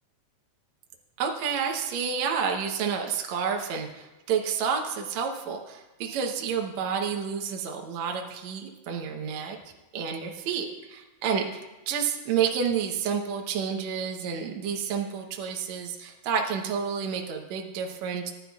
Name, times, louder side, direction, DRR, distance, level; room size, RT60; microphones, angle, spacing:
voice 1, 1.2-9.6 9.9-18.3, right 6 dB, 70° right, 2 dB, 2.1 m, -30 dB
19.0 x 11.0 x 2.3 m, 1.1 s
omnidirectional pair, 3.4 m